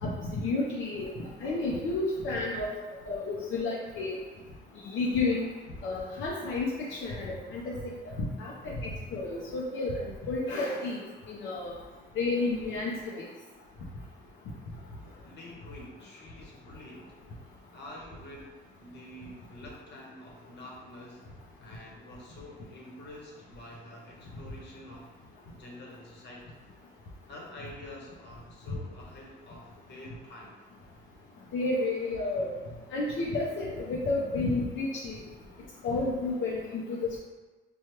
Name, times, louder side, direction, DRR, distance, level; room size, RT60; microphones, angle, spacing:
voice 1, 0.0-2.7 3.1-4.2 4.8-5.5 5.8-7.9 8.2-9.9 10.3-11.0 11.3-11.7 12.2-13.2 31.5-32.5 32.9-35.2 35.8-37.2, left 3 dB, 75° left, -5 dB, 0.6 m, -31 dB
voice 2, 15.2-17.2 17.7-21.3 21.6-25.1 25.6-26.6 27.3-30.6, left 1 dB, 60° left, -2 dB, 1.0 m, -47 dB
4.4 x 2.3 x 3.1 m, 1.2 s
cardioid pair, 90°, 20 cm